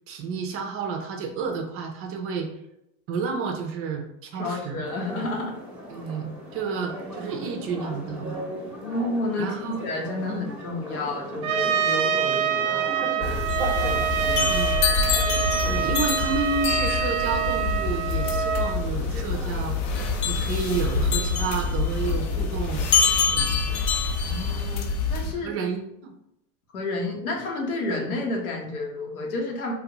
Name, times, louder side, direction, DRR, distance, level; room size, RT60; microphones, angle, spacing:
voice 1, 0.1-2.5 3.1-4.8 5.1-5.2 5.9-8.4 9.4-9.9 10.3-10.5 14.5-14.9 15.6-19.8 20.3-22.9 23.3-23.8 25.2-26.1, right 5 dB, 35° right, 4 dB, 0.5 m, -31 dB
voice 2, 4.4-5.5 8.8-13.4 13.8-14.6 15.0-15.1 24.2-25.5 26.7-29.7, left 2 dB, 85° left, -1 dB, 1.1 m, -31 dB
sound 1, 4.8-22.6, equal, 5° right, 0.8 m, -39 dB
Trumpet, 11.4-18.8, right 9 dB, 90° right, 0.5 m, -26 dB
sound 2, 13.2-25.3, left 4 dB, 45° left, 0.6 m, -25 dB
3.4 x 2.4 x 2.9 m, 0.84 s
hypercardioid pair, 110°, 42 cm